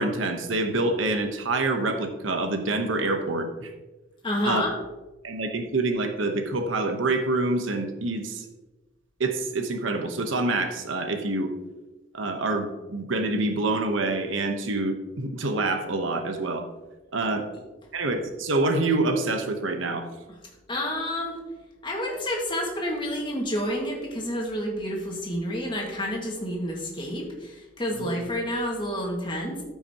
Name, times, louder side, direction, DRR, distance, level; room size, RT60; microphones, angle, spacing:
voice 1, 0.0-3.7 4.4-4.6 5.2-8.4 9.2-11.5 12.1-16.7 17.1-17.5 17.9-20.1 28.0-28.1, right 2 dB, 85° right, 5 dB, 1.0 m, -26 dB
voice 2, 4.2-4.8 20.7-21.4 21.8-29.6, equal, 25° left, -1 dB, 1.8 m, -29 dB
13.5 x 5.8 x 2.9 m, 1.1 s
head